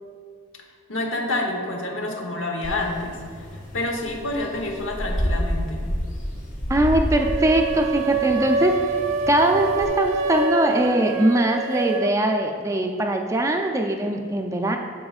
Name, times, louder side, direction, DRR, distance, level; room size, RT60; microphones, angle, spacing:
voice 1, 0.9-5.8, left 2 dB, 85° left, 2 dB, 1.0 m, -28 dB
sound 1, 2.6-9.9, equal, 40° left, 1.5 m, -30 dB
voice 2, 6.7-8.7 9.3-14.8, right 1 dB, 15° right, 3 dB, 0.4 m, -21 dB
sound 2, 7.2-12.1, right 4 dB, 85° right, 0.4 m, -26 dB
8.5 x 6.9 x 2.4 m, 2.1 s
head